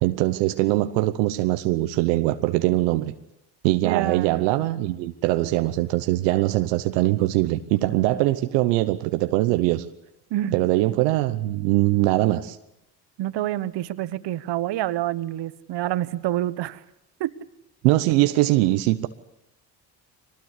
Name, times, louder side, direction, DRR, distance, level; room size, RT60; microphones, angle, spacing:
voice 1, 0.0-3.1 3.6-9.8 10.5-12.6 17.8-19.1, right 17 dB, 85° right, 0.9 m, -22 dB
voice 2, 3.8-4.3 10.3-10.6 13.2-16.8 17.2-17.3, right 13 dB, 65° right, 1.2 m, -27 dB
22.5 x 19.5 x 8.2 m
hypercardioid pair, 60°, 46 cm